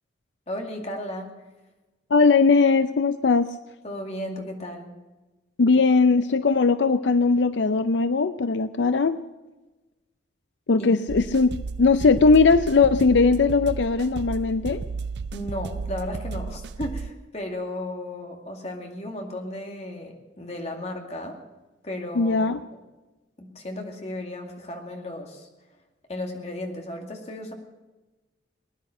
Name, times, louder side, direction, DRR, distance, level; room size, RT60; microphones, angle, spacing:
voice 1, 0.5-1.3 3.8-4.9 10.8-10.9 15.3-21.4 21.8-22.8 23.4-25.5 26.1-27.5, left 1 dB, 35° left, 2 dB, 2.3 m, -34 dB
voice 2, 2.1-3.5 5.6-9.2 10.7-11.5 11.8-14.8 22.1-22.6, left 4 dB, 75° left, 12 dB, 0.5 m, -19 dB
sound 1, 11.1-17.1, right 4 dB, 65° right, 0.5 m, -33 dB
21.0 x 10.5 x 6.5 m, 1.1 s
head